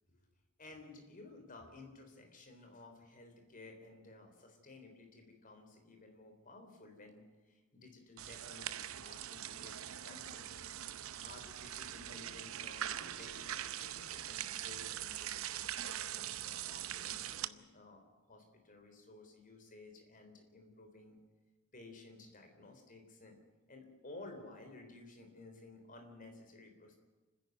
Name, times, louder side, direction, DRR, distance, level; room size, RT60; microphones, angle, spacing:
voice 1, 0.6-10.5 11.2-21.2 21.7-23.4 23.7-26.9, left 2 dB, 40° left, 4 dB, 3.7 m, -55 dB
sound 1, 8.2-17.5, right 11 dB, 70° right, 0.7 m, -42 dB
29.0 x 10.5 x 9.3 m, 1.2 s
head